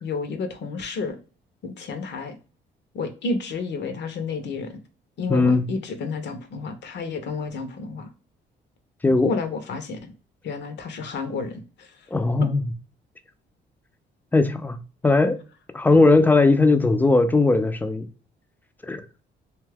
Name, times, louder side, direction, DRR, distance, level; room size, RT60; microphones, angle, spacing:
voice 1, 0.0-1.2 1.6-2.4 2.9-4.8 5.2-8.1 9.2-10.1 10.4-12.0 12.4-12.5, left 4 dB, 60° left, 0.6 m, -31 dB
voice 2, 5.3-5.6 9.0-9.3 12.1-12.6 14.3-14.8 15.0-15.4 15.7-18.1 18.8-19.0, left 3 dB, 10° left, 0.3 m, -18 dB
2.7 x 2.3 x 3.3 m
cardioid pair, 90°, 20 cm